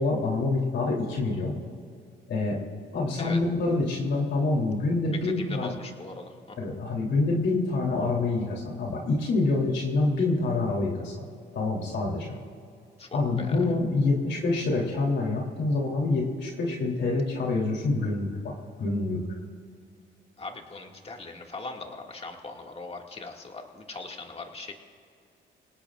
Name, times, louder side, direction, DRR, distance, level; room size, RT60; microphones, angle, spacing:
voice 1, 0.0-1.5 2.3-2.6 2.9-5.8 6.6-11.2 11.5-12.3 13.1-18.5 18.8-19.2, left 3 dB, 65° left, -2 dB, 3.3 m, -26 dB
voice 2, 5.2-6.6 13.0-13.1 13.4-13.6 20.4-24.7, left 3 dB, 30° left, 2 dB, 2.2 m, -40 dB
27.0 x 18.0 x 2.5 m, 2.4 s
cardioid pair, 90°, 20 cm